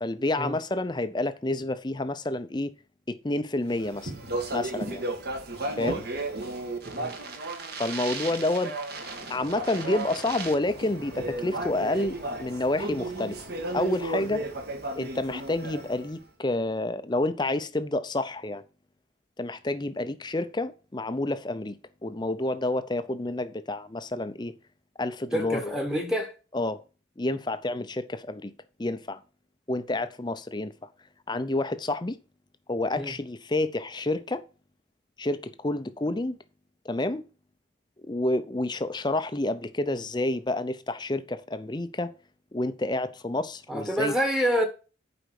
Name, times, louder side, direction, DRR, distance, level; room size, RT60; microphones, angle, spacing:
voice 1, 0.0-2.7 3.1-4.1 4.5-5.0 5.8-6.0 7.8-8.7 9.3-13.4 13.7-14.4 14.9-18.6 19.4-24.5 25.0-25.8 26.5-26.8 27.2-28.5 28.8-29.2 29.7-30.9 31.3-32.2 32.7-34.4 35.2-36.4 36.8-37.3 38.0-42.1 42.5-44.1, left 2 dB, 20° left, 0.6 m, -29 dB
Speech, 3.7-16.1, right 2 dB, 50° right, 1.6 m, -34 dB
sound 1, 9.4-14.6, left 1 dB, 80° right, 5.1 m, -48 dB
voice 2, 25.3-26.3 33.0-33.1 43.7-44.6, equal, 5° right, 1.2 m, -27 dB
8.1 x 5.1 x 6.0 m
head